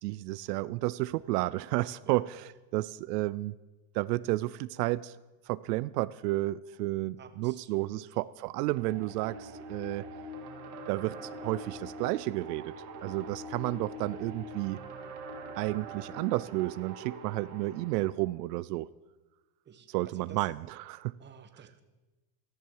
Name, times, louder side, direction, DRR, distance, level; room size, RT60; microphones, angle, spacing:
voice 1, 0.0-3.5 3.9-5.1 5.5-10.1 10.9-12.7 13.0-14.8 15.6-18.9 19.9-21.1, right 19 dB, 85° right, 18 dB, 0.6 m, -32 dB
voice 2, 7.2-8.1 19.6-20.5 21.2-21.8, right 7 dB, 25° right, 9 dB, 1.2 m, -51 dB
sound 1, 8.8-18.1, right 1 dB, 65° right, 2.9 m, -43 dB
17.5 x 12.5 x 4.7 m, 1.2 s
supercardioid pair, 135°, 46 cm